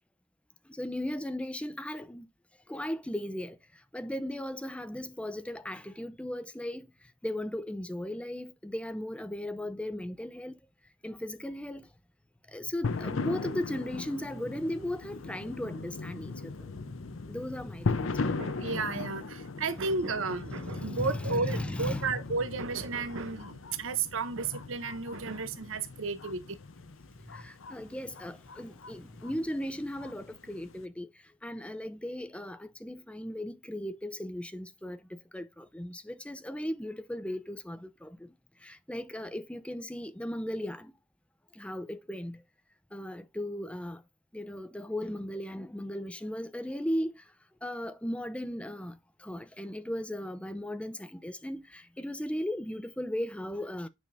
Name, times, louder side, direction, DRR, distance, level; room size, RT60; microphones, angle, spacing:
voice 1, 0.7-2.3 2.7-3.6 3.9-6.9 7.2-10.6 11.0-11.9 12.5-18.1 20.6-22.2 27.2-31.1 31.4-38.3 38.6-40.9 41.5-42.4 42.9-44.0 44.3-47.2 47.6-53.9, left 1 dB, 5° left, 0.6 m, -37 dB
sound 1, 12.8-30.8, left 3 dB, 70° left, 0.7 m, -38 dB
voice 2, 18.4-26.4, right 4 dB, 70° right, 0.8 m, -33 dB
9.2 x 5.2 x 2.6 m
head